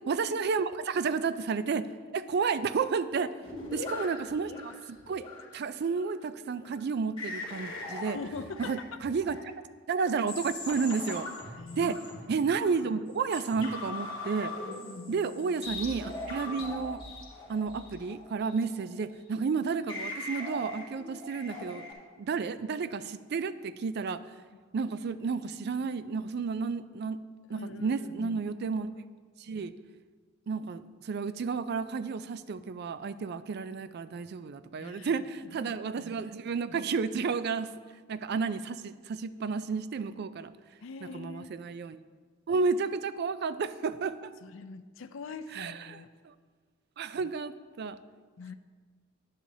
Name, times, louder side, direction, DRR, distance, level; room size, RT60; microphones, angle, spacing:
voice 1, 0.1-1.9 2.1-3.3 3.7-5.3 5.5-8.2 8.6-8.8 9.0-9.4 9.9-11.3 11.8-12.0 12.3-14.5 15.1-17.0 17.5-21.8 22.2-24.2 24.7-27.2 27.5-28.9 29.5-29.7 30.5-37.7 38.1-40.5 41.0-42.0 42.5-44.3 45.6-46.0 47.0-48.0, right 5 dB, 55° right, 14 dB, 0.4 m, -31 dB
sound 1, 3.4-5.5 5.8-6.1 6.5-6.8 7.2-9.5 9.9-12.8 13.2-19.0 19.4-19.5 19.9-21.9, left 2 dB, 25° left, 2.6 m, -41 dB
voice 2, 3.6-4.1 8.0-9.0 11.6-12.2 14.8-15.3 27.5-28.4 34.8-35.8 40.8-41.5 44.4-46.1 48.4-48.5, left 4 dB, 70° left, 10 dB, 0.5 m, -43 dB
10.0 x 9.8 x 2.7 m, 1.5 s
head